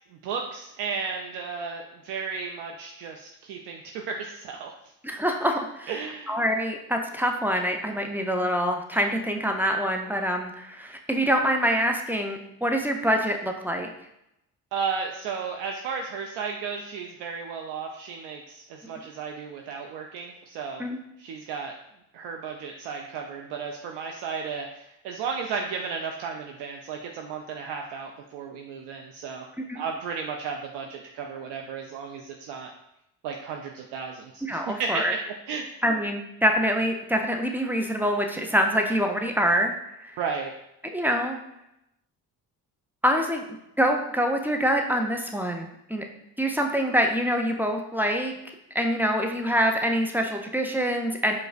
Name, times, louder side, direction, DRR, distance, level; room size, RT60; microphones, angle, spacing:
voice 1, 0.2-4.7 5.9-6.4 14.7-20.8 21.2-21.7 22.1-29.5 29.7-32.7 33.2-35.1 35.5-35.7 40.2-40.5, right 5 dB, 65° right, 2 dB, 0.5 m, -34 dB
voice 2, 5.0-5.9 6.3-13.9 20.8-21.0 29.6-29.8 34.4-35.1 35.8-39.7 40.0-40.2 40.9-41.4 43.0-43.4 43.8-46.0 46.4-48.3 48.7-51.3, equal, 5° right, 3 dB, 0.3 m, -25 dB
4.8 x 2.1 x 2.4 m, 0.83 s
hypercardioid pair, 55°, 44 cm